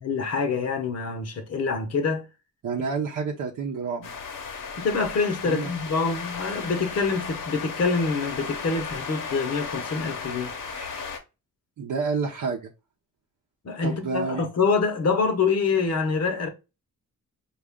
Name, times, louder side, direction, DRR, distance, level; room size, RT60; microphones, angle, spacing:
voice 1, 0.0-2.2 4.8-10.5 13.6-16.5, left 4 dB, 50° left, 0.9 m, -26 dB
voice 2, 2.6-4.1 5.4-5.7 10.7-10.9 11.8-12.7 13.8-14.5, right 5 dB, 70° right, 0.7 m, -29 dB
sound 1, 4.0-11.2, left 5 dB, 80° left, 0.9 m, -35 dB
4.9 x 2.4 x 3.5 m
wide cardioid pair, 120°, 32 cm